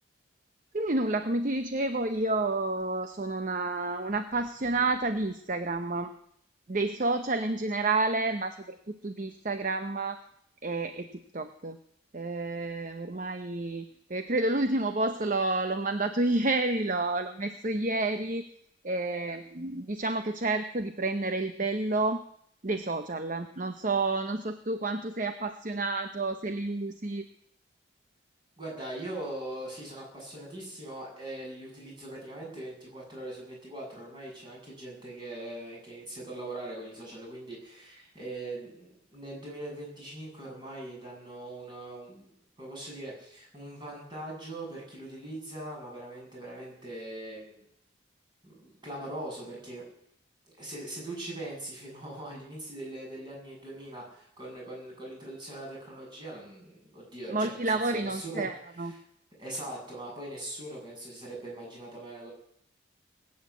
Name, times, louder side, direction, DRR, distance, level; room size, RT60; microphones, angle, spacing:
voice 1, 0.7-6.1 6.7-10.2 10.6-11.1 11.3-11.8 12.1-18.4 18.8-22.2 22.6-27.2 57.3-58.9, right 2 dB, 40° right, 8 dB, 0.8 m, -30 dB
voice 2, 28.6-42.3 42.6-47.6 48.4-49.8 50.4-58.5 58.7-59.0 59.4-62.3, right 1 dB, 25° right, -2 dB, 7.6 m, -41 dB
19.5 x 8.8 x 8.4 m, 0.70 s
head